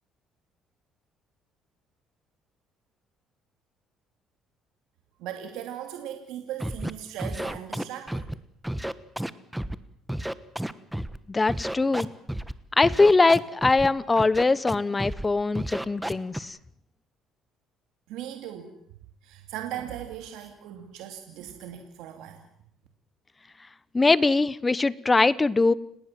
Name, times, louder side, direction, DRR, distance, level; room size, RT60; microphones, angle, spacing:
voice 1, 5.2-8.3 18.1-18.7 19.2-22.5, right 10 dB, 90° right, 5 dB, 2.7 m, -38 dB
Scratching (performance technique), 6.6-6.9 7.2-8.3 8.6-9.7 10.1-11.2 11.5-12.5 12.8-13.9 14.2-14.7 15.0-15.3 15.5-16.4, right 1 dB, 5° right, 1.2 m, -31 dB
voice 2, 11.3-12.1 12.8-16.6 23.9-25.7, left 3 dB, 20° left, 19 dB, 1.0 m, -22 dB
30.0 x 18.5 x 7.5 m, 0.69 s
cardioid pair, 105°, 0 cm